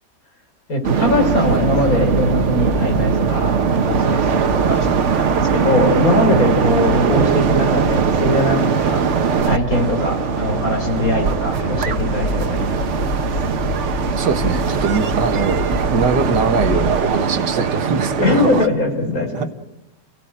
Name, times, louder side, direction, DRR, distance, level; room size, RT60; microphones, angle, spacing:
voice 1, 0.7-9.0 9.4-13.3 18.2-19.5, left 1 dB, 55° left, 3 dB, 4.4 m, -21 dB
sound 1, 0.8-18.7, right 6 dB, 50° right, 1.2 m, -20 dB
sound 2, 1.0-17.0, left 1 dB, 40° left, 2.7 m, -28 dB
sound 3, 8.6-16.5, right 2 dB, 20° right, 2.1 m, -39 dB
voice 2, 14.2-18.6 19.3-19.5, right 5 dB, 75° right, 7 dB, 2.0 m, -22 dB
29.5 x 16.5 x 8.8 m, 0.96 s
omnidirectional pair, 1.8 m